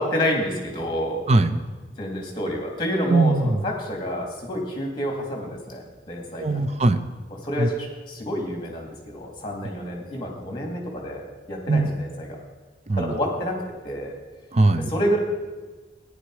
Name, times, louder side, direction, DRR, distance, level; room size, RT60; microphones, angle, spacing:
voice 1, 0.0-1.2 2.0-6.7 7.4-12.4 13.0-13.6 13.8-14.1 14.9-15.2, equal, 25° left, 1 dB, 2.6 m, -28 dB
voice 2, 1.3-1.6 3.1-3.6 6.4-7.0 7.6-7.7 11.7-11.9 12.9-13.2 14.5-14.9, right 2 dB, 40° right, 10 dB, 0.6 m, -20 dB
14.0 x 10.0 x 4.9 m, 1.3 s
head